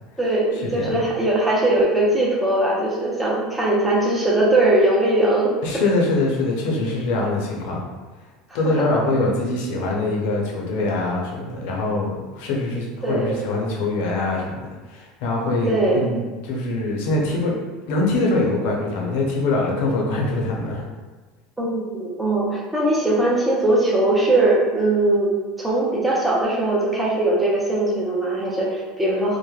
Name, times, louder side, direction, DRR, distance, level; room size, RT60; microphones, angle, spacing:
voice 1, 0.2-5.5 8.5-8.9 13.0-13.4 15.6-16.0 21.6-29.4, right 2 dB, 10° right, -5 dB, 0.5 m, -20 dB
voice 2, 5.6-7.9 8.5-17.6 17.9-20.8, left 2 dB, 75° left, -1 dB, 0.6 m, -23 dB
3.1 x 2.0 x 2.3 m, 1.3 s
supercardioid pair, 140°, 0 cm